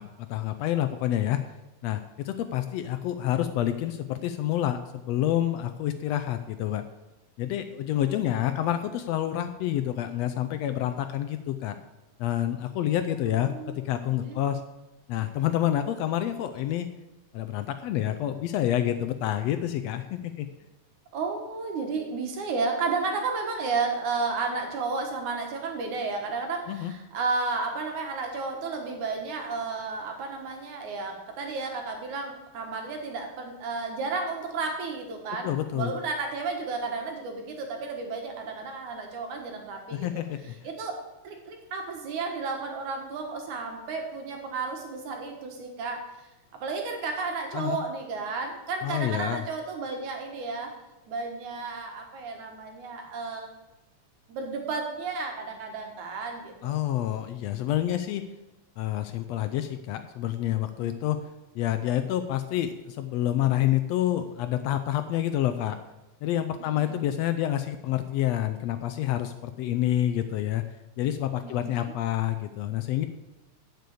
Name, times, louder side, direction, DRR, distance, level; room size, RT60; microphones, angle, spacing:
voice 1, 0.0-1.4 1.8-6.8 7.4-11.8 12.2-14.6 15.1-16.9 17.3-20.5 26.7-26.9 35.4-36.0 39.9-40.6 47.5-47.8 48.8-49.4 56.6-58.2 58.8-61.2 61.5-65.8 66.2-70.6 71.0-73.1, left 12 dB, 80° left, 9 dB, 1.6 m, -28 dB
voice 2, 7.9-8.7 13.2-13.8 14.1-14.4 21.1-40.2 40.6-41.0 41.2-46.3 46.6-50.7 51.1-53.5 54.3-56.8 60.8-60.9 66.6-67.0 71.4-72.0, right 4 dB, 85° right, 3 dB, 3.0 m, -33 dB
7.8 x 6.8 x 8.4 m, 1.0 s
omnidirectional pair, 3.3 m